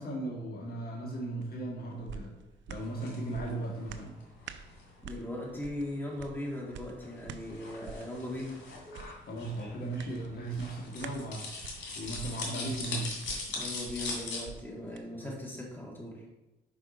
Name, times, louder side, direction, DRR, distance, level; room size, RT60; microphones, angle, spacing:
voice 1, 0.0-2.3 2.7-4.2 9.3-11.5 11.9-13.2 14.8-15.3, right 2 dB, 50° left, -2 dB, 1.6 m, -37 dB
sound 1, 1.4-15.1 15.5-15.6, right 6 dB, 70° right, 0.5 m, -49 dB
sound 2, 2.7-14.4, left 3 dB, 65° left, 2.2 m, -42 dB
voice 2, 5.0-8.6 13.6-16.3, left 1 dB, 10° left, -3 dB, 2.2 m, -39 dB
5.0 x 5.0 x 5.1 m, 1.0 s
cardioid pair, 90°, 20 cm